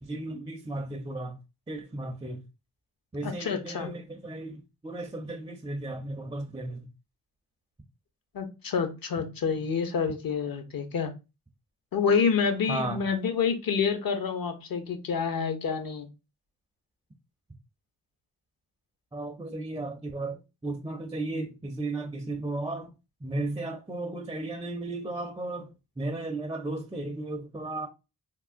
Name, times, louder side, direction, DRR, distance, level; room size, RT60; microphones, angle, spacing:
voice 1, 0.0-1.4 1.7-2.4 3.1-6.9 12.7-13.0 19.1-22.9 23.2-25.7 26.0-27.9, right 2 dB, 10° right, 0.4 m, -35 dB
voice 2, 3.2-3.9 8.3-11.1 11.9-16.1, left 6 dB, 60° left, 0.7 m, -28 dB
3.4 x 2.1 x 2.4 m
cardioid pair, 50°, 40 cm